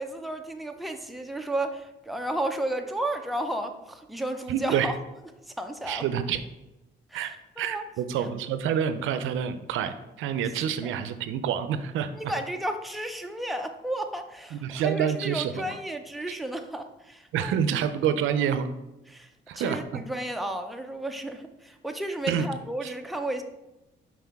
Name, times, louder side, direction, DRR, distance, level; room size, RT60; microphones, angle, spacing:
voice 1, 0.0-4.9 5.6-6.1 7.1-7.8 10.8-10.9 12.1-17.5 19.1-19.3 19.5-23.4, right 1 dB, ahead, 5 dB, 0.6 m, -33 dB
voice 2, 4.5-4.9 5.9-6.4 7.1-12.3 14.5-15.6 16.3-16.4 17.3-18.7 19.5-20.0 22.3-22.5 22.8-22.9, right 8 dB, 85° right, 10 dB, 0.5 m, -28 dB
5.7 x 4.7 x 3.5 m, 0.98 s
cardioid pair, 90°, 20 cm